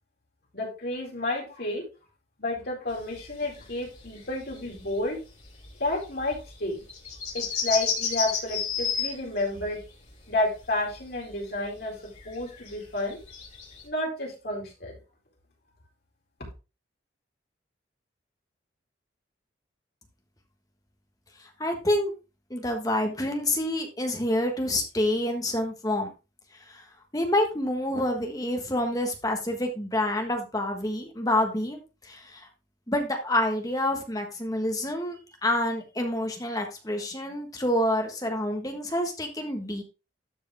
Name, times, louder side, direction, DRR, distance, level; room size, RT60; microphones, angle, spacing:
voice 1, 0.5-1.8 2.4-5.2 5.8-6.8 7.3-9.8 10.3-11.9 12.2-13.2 13.8-15.0, left 2 dB, 55° left, -2 dB, 4.2 m, -30 dB
sound 1, 2.9-9.5 9.8-10.2 10.6-11.9 12.1-13.8, left 6 dB, 40° left, 3.6 m, -33 dB
voice 2, 21.6-22.1 22.5-26.1 26.7-26.8 27.1-32.5 32.9-39.8, left 1 dB, 20° left, 4 dB, 1.5 m, -28 dB
13.0 x 4.8 x 3.5 m, 0.29 s
head